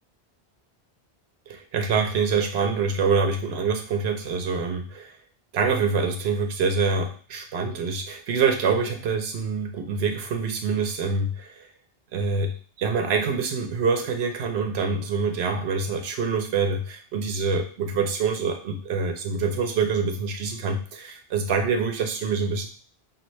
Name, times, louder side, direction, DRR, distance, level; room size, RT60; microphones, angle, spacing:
voice 1, 1.5-5.2 5.5-11.7 12.1-22.7, right 5 dB, 85° right, 5 dB, 0.9 m, -25 dB
5.7 x 2.4 x 3.1 m, 0.41 s
omnidirectional pair, 1.0 m